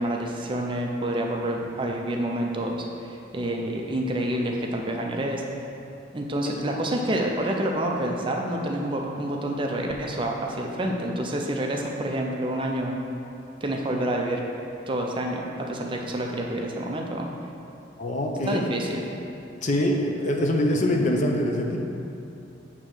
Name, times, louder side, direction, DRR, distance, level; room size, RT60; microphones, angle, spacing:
voice 1, 0.0-5.4 6.1-13.0 13.6-14.4 14.9-17.3 18.5-19.2, right 1 dB, 25° right, 0 dB, 0.5 m, -28 dB
voice 2, 18.0-18.6 19.6-21.8, left 1 dB, 40° left, 1 dB, 0.6 m, -24 dB
8.2 x 3.0 x 6.2 m, 2.7 s
head